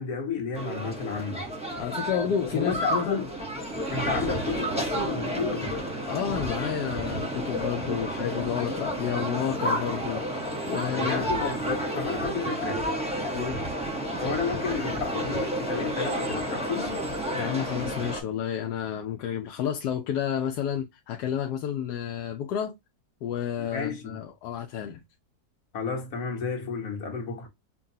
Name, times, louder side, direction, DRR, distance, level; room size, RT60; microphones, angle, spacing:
voice 1, 0.0-1.5 2.2-3.3 3.9-5.8 10.9-12.9 14.2-17.0 23.6-24.2 25.7-27.5, left 5 dB, 65° left, 1.6 m, -32 dB
sound 1, 0.5-18.2, right 1 dB, 5° right, 0.9 m, -31 dB
voice 2, 1.8-3.2 4.2-4.3 6.1-11.3 11.7-11.8 13.3-13.7 17.3-22.8 23.2-25.0, left 9 dB, 85° left, 1.2 m, -31 dB
5.8 x 2.3 x 2.7 m
omnidirectional pair, 1.7 m